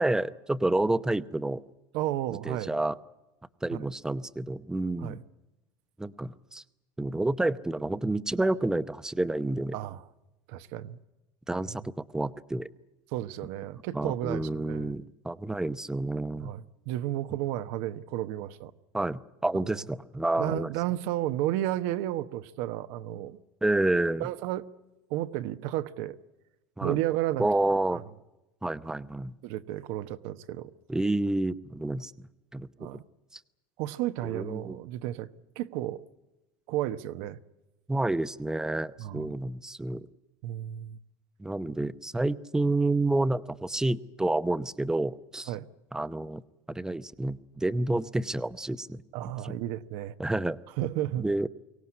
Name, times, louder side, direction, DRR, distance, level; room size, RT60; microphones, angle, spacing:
voice 1, 0.0-1.6 2.4-2.9 3.6-5.2 6.0-6.6 7.0-9.7 11.5-12.7 13.9-16.5 18.9-20.7 23.6-24.3 26.8-27.0 27.4-28.0 28.6-29.3 30.9-32.9 34.2-34.8 37.9-40.1 41.4-45.5 45.9-46.4 46.7-49.5 50.2-50.6 51.2-51.5, right 2 dB, 5° right, 0.8 m, -29 dB
voice 2, 1.9-2.7 3.7-3.9 5.0-5.2 9.7-10.0 10.5-11.0 11.7-11.8 13.1-14.9 16.4-18.7 19.5-19.8 20.4-23.4 24.2-24.6 25.1-26.2 26.8-27.5 29.4-30.7 32.8-33.0 33.8-35.3 35.6-36.0 36.7-37.4 39.0-39.4 40.4-41.0 45.5-45.7 49.1-50.1 50.8-51.3, right 14 dB, 70° right, 1.1 m, -32 dB
24.0 x 17.5 x 9.7 m
supercardioid pair, 120°, 10 cm